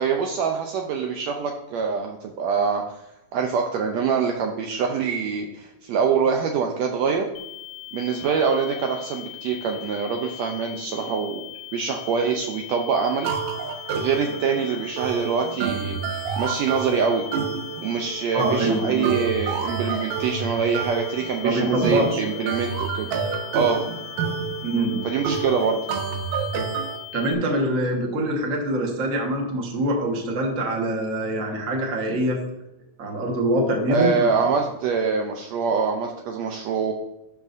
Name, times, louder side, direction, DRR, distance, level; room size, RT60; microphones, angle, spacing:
voice 1, 0.0-3.0 3.3-7.3 7.9-11.5 11.7-13.3 13.9-17.2 17.8-23.1 23.5-23.8 25.0-25.8 33.9-36.9, right 6 dB, 85° right, 3 dB, 1.5 m, -24 dB
sound 1, 7.4-27.4, left 18 dB, 80° left, 1.8 m, -40 dB
sound 2, 13.2-27.0, right 6 dB, 70° right, 2.0 m, -29 dB
voice 2, 18.3-19.1 21.4-22.2 24.6-25.1 27.1-32.4 33.0-34.3, right 1 dB, 50° right, 1 dB, 1.0 m, -24 dB
12.0 x 4.8 x 2.6 m, 0.92 s
omnidirectional pair, 3.6 m